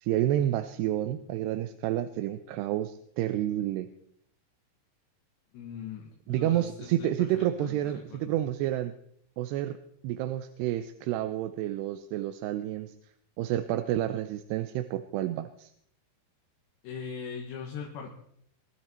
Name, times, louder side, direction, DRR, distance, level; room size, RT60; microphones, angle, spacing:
voice 1, 0.0-3.9 6.3-8.9 9.4-9.8 10.0-12.9 13.4-15.7, right 13 dB, 80° right, 10 dB, 2.8 m, -29 dB
voice 2, 5.5-8.4 16.8-18.1, left 6 dB, 90° left, 0 dB, 4.0 m, -41 dB
23.0 x 12.5 x 4.4 m, 0.68 s
omnidirectional pair, 4.9 m